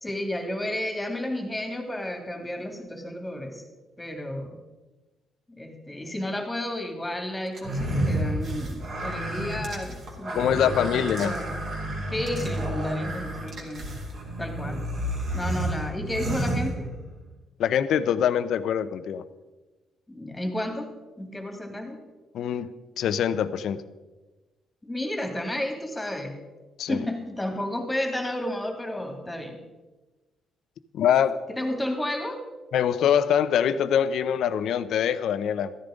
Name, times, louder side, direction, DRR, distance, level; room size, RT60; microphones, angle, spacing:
voice 1, 0.0-3.6 4.0-4.6 5.5-11.6 12.1-13.9 14.4-14.8 15.3-16.9 20.1-22.0 24.8-26.4 26.9-29.6 31.5-32.4, left 1 dB, 10° left, 4 dB, 2.5 m, -32 dB
sound 1, 7.6-17.2, right 1 dB, 55° right, 3.2 m, -31 dB
voice 2, 10.3-11.3 17.6-19.2 22.3-23.8 26.8-27.0 30.9-31.4 32.7-35.7, left 9 dB, 75° left, 13 dB, 0.7 m, -24 dB
14.0 x 10.5 x 5.1 m, 1.2 s
cardioid pair, 90°, 0 cm